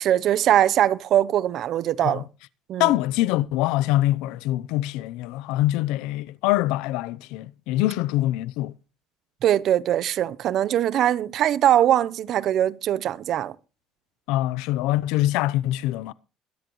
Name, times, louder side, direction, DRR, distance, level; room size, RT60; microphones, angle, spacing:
voice 1, 0.0-2.2 2.7-2.9 9.4-13.5, right 11 dB, 60° right, 0.9 m, -21 dB
voice 2, 2.8-8.7 14.3-16.1, left 16 dB, 85° left, 0.7 m, -24 dB
22.5 x 10.5 x 3.1 m
supercardioid pair, 95°, 0 cm